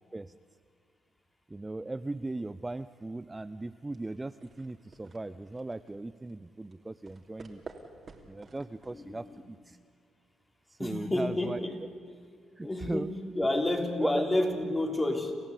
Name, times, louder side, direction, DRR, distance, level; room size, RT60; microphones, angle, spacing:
voice 1, 1.5-7.6 8.3-9.8 10.7-11.7 12.6-13.1 13.5-13.6 14.0-14.2, right 2 dB, 15° right, 12 dB, 0.5 m, -38 dB
sound 1, 3.9-9.5, right 4 dB, 40° right, 2.8 m, -52 dB
voice 2, 8.9-9.4 10.8-11.8 12.6-15.3, left 1 dB, 20° left, 3 dB, 3.5 m, -30 dB
29.0 x 14.5 x 8.4 m, 2.4 s
cardioid pair, 90°, 0 cm